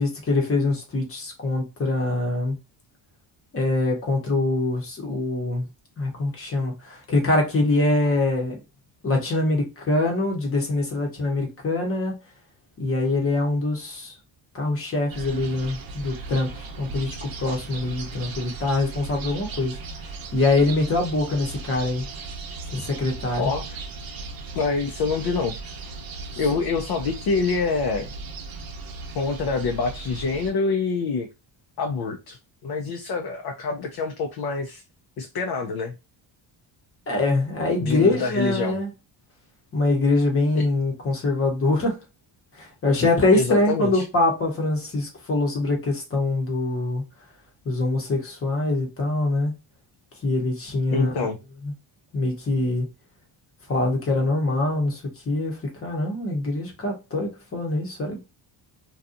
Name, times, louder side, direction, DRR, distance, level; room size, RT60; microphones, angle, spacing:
voice 1, 0.0-2.6 3.5-5.7 6.0-8.6 9.0-12.1 12.8-14.1 14.5-19.7 20.3-22.0 22.7-23.5 37.1-38.9 39.7-42.0 42.6-47.0 47.6-49.5 50.2-51.3 51.6-51.7 52.1-52.9 53.7-55.0 55.3-58.2, left 2 dB, 30° left, 0.8 m, -24 dB
sound 1, 15.1-30.5, right 3 dB, 45° right, 0.7 m, -37 dB
voice 2, 23.4-23.8 24.5-25.6 26.4-28.1 29.1-31.3 31.8-32.4 32.6-34.8 35.2-35.9 37.8-38.8 40.6-40.7 43.3-44.0 50.9-51.4, left 4 dB, 50° left, 0.5 m, -26 dB
2.7 x 2.3 x 2.4 m
cardioid pair, 140°, 49 cm